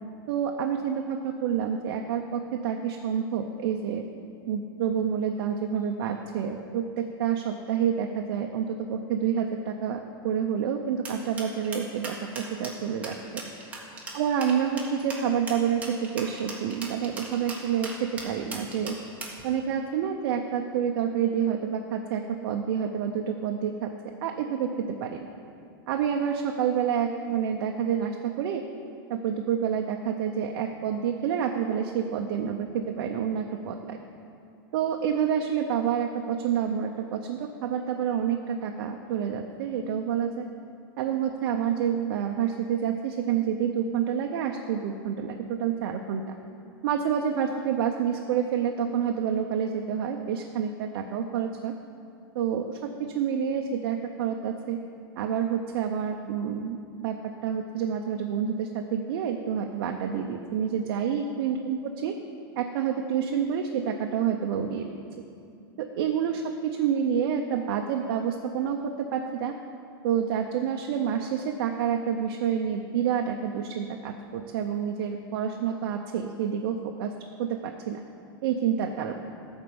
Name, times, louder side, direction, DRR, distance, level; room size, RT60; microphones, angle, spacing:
voice 1, 0.3-4.0 4.5-13.4 14.1-19.0 19.4-23.9 24.2-25.2 25.9-28.6 29.1-34.0 34.7-40.5 41.0-46.4 46.8-51.7 52.3-54.8 55.2-57.2 57.4-62.1 62.6-64.9 65.8-69.5 70.0-77.1 77.4-78.0 78.4-79.2, right 8 dB, 60° right, 3 dB, 0.6 m, -28 dB
sound 1, 11.0-19.4, right 3 dB, 10° right, 1.3 m, -38 dB
13.0 x 4.5 x 7.0 m, 2.5 s
supercardioid pair, 155°, 13 cm